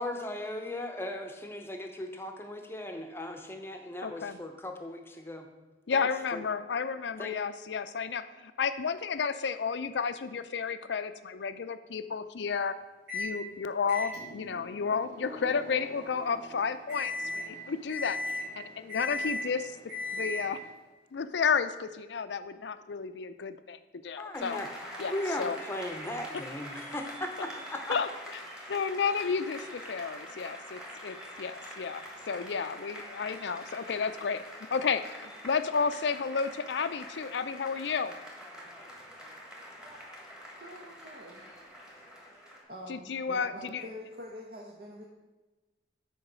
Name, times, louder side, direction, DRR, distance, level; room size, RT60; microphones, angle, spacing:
voice 1, 0.0-5.5 5.9-6.4 7.2-7.3 24.2-24.7 25.1-28.0, left 1 dB, 15° left, 4 dB, 0.8 m, -37 dB
voice 2, 4.0-4.4 5.9-12.7 13.1-19.8 20.1-20.6 21.1-24.6 25.0-25.6 27.9-28.1 28.7-34.4 34.7-38.1 42.9-43.8, left 5 dB, 80° left, 12 dB, 0.5 m, -32 dB
Microwave oven, 13.1-13.4 13.9-20.7, left 2 dB, 90° right, 3.0 m, -38 dB
Applause, 24.3-42.6, equal, 5° right, 1.5 m, -45 dB
voice 3, 40.6-41.4 42.7-45.0, equal, 55° right, -1 dB, 1.0 m, -45 dB
8.0 x 4.6 x 6.0 m, 1.2 s
head